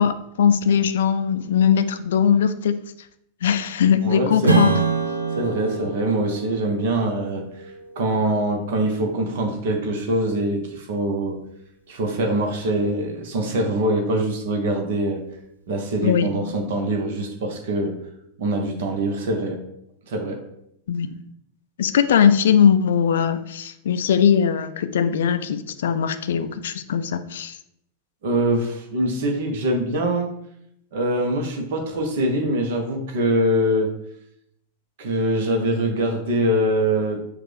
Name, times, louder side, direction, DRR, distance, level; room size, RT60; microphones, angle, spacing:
voice 1, 0.0-2.8 3.4-4.7 16.0-16.3 20.9-21.2 21.8-27.6, left 8 dB, 60° left, 10 dB, 0.4 m, -20 dB
voice 2, 4.0-4.6 5.4-7.4 8.0-11.4 11.9-15.2 15.7-18.0 18.4-19.6 20.1-20.4 28.2-30.3 30.9-33.9 35.0-37.2, right 1 dB, 55° right, 3 dB, 1.0 m, -23 dB
Strum, 4.4-9.4, right 4 dB, 80° right, 0.5 m, -26 dB
6.3 x 2.4 x 3.4 m, 0.74 s
figure-of-eight pair, 90°, 0 cm